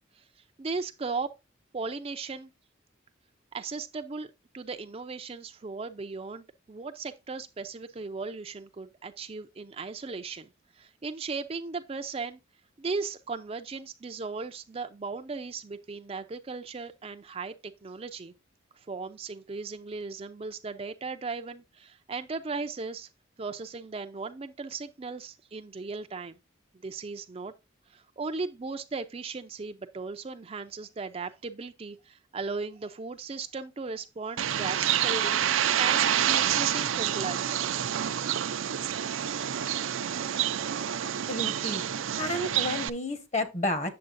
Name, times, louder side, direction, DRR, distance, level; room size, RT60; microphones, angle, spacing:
voice 1, 0.6-1.3 1.7-2.5 3.5-4.3 4.5-10.5 10.8-12.4 12.8-18.3 18.8-23.1 23.4-26.4 26.8-27.5 27.9-37.5, right 4 dB, 30° right, 0.4 m, -37 dB
Bird, 34.4-42.9, right 10 dB, 80° right, 0.5 m, -28 dB
voice 2, 41.0-41.8 42.2-43.9, left 1 dB, 35° left, 1.1 m, -31 dB
8.7 x 7.0 x 2.5 m
head